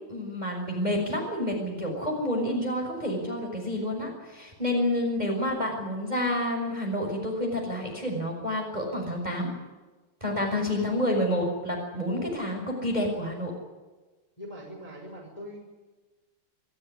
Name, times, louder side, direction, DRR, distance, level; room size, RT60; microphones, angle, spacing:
voice 1, 0.1-9.5 10.2-13.5, left 1 dB, 10° right, 1 dB, 5.7 m, -29 dB
voice 2, 10.2-10.7 14.4-15.6, equal, 10° left, 0 dB, 5.2 m, -42 dB
25.5 x 14.5 x 9.9 m, 1.2 s
omnidirectional pair, 4.8 m